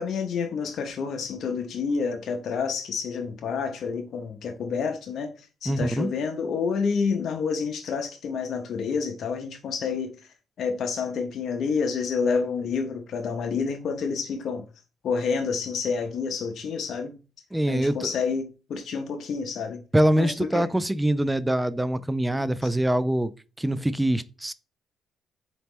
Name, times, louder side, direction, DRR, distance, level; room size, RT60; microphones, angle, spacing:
voice 1, 0.0-14.6 15.0-17.2 17.7-19.8 20.2-20.7 22.6-22.7, left 5 dB, 65° left, 0.6 m, -29 dB
voice 2, 5.7-6.1 17.5-18.1 19.9-23.3 23.6-24.5, right 1 dB, 10° right, 0.3 m, -24 dB
4.0 x 3.0 x 3.5 m
cardioid pair, 90°, 0 cm